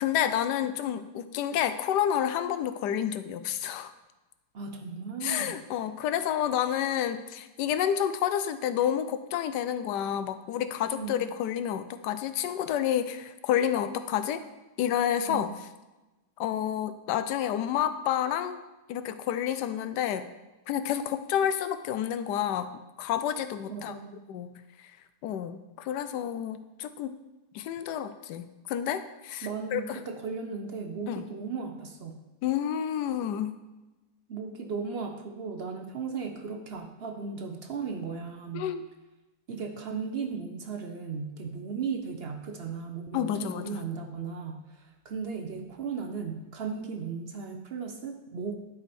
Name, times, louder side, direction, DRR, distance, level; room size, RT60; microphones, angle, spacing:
voice 1, 0.0-3.9 5.2-14.4 14.8-15.5 16.4-18.6 18.9-20.3 20.7-23.9 24.3-24.9 25.2-27.2 27.5-29.8 31.1-31.2 32.4-33.6 38.5-38.8 43.1-43.7, left 10 dB, 75° left, 12 dB, 1.2 m, -29 dB
voice 2, 4.5-5.5 10.9-11.2 15.3-15.6 23.7-24.2 29.4-32.2 34.3-38.7 39.5-48.6, right 5 dB, 55° right, 4 dB, 0.6 m, -36 dB
11.0 x 5.0 x 4.2 m, 1.1 s
omnidirectional pair, 1.9 m